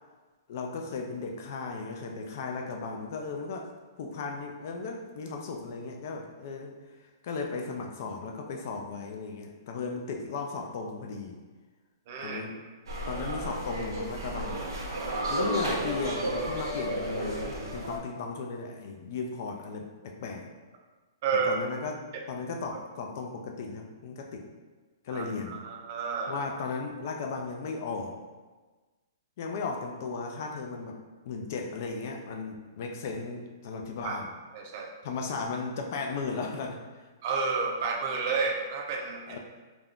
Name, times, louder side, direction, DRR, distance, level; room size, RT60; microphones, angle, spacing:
voice 1, 0.5-3.7 4.0-6.7 7.2-11.4 12.2-12.6 13.1-14.7 15.3-20.5 21.3-22.0 22.3-24.5 25.0-25.6 26.3-28.2 29.4-31.0 31.2-34.3 35.0-37.0 39.3-39.4, left 4 dB, 45° left, 2 dB, 0.4 m, -36 dB
voice 2, 12.1-12.4 21.2-21.5 25.1-26.4 34.0-34.2 34.5-34.9 37.2-39.4, right 5 dB, 40° right, 0 dB, 0.4 m, -30 dB
sound 1, 12.9-18.0, right 1 dB, 80° right, 0.7 m, -32 dB
2.5 x 2.3 x 3.5 m, 1.3 s
hypercardioid pair, 165°, 2 cm